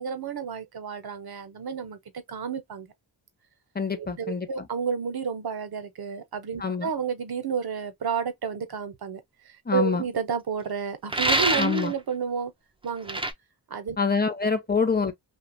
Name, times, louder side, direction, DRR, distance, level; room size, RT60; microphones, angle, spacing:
voice 1, 0.0-2.0 2.3-2.9 3.9-12.5 12.8-13.2 13.7-14.0, right 6 dB, 50° right, 0.8 m, -31 dB
voice 2, 3.7-4.5 6.6-6.9 9.7-10.0 11.6-11.9 14.0-15.1, left 5 dB, 20° left, 0.7 m, -25 dB
sound 1, 11.1-11.9 13.1-13.3, right 2 dB, 10° right, 0.4 m, -24 dB
2.7 x 2.2 x 2.6 m
cardioid pair, 75°, 47 cm